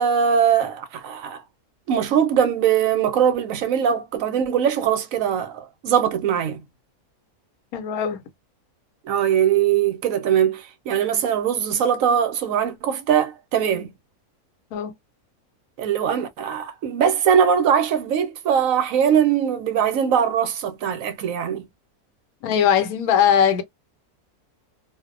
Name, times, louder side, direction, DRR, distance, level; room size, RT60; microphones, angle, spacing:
voice 1, 0.0-1.4 1.9-6.6 9.1-13.9 15.8-21.7, right 8 dB, 70° right, 0.9 m, -21 dB
voice 2, 7.7-8.2 14.7-14.9 22.4-23.6, left 8 dB, 80° left, 1.1 m, -20 dB
2.5 x 2.1 x 2.4 m
omnidirectional pair, 1.5 m